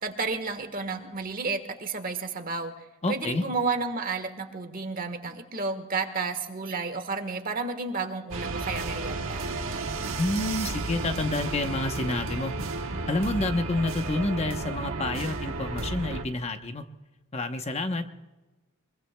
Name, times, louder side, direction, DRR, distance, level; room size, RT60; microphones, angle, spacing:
voice 1, 0.0-2.7 3.1-9.4, right 4 dB, 40° right, 8 dB, 1.3 m, -31 dB
voice 2, 3.0-3.4 10.2-12.5 13.1-16.8 17.3-18.0, left 2 dB, 30° left, 7 dB, 0.8 m, -29 dB
sound 1, 8.3-16.2, right 3 dB, 80° right, 1.2 m, -33 dB
24.0 x 22.5 x 2.2 m, 1.2 s
head